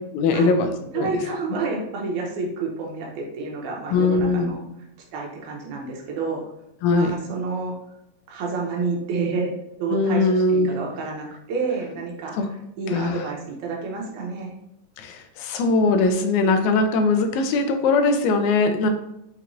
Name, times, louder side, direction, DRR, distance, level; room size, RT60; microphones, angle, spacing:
voice 1, 0.1-0.7 1.0-1.1 3.9-4.5 6.8-7.1 9.9-10.7 12.3-12.5 12.9-13.3 15.0-18.9, left 3 dB, 85° left, 6 dB, 1.9 m, -20 dB
voice 2, 0.9-4.6 5.1-6.4 6.9-7.7 8.3-9.5 9.8-12.4 12.8-14.6, right 4 dB, 90° right, -1 dB, 2.2 m, -29 dB
5.6 x 3.0 x 2.5 m, 0.84 s
omnidirectional pair, 3.4 m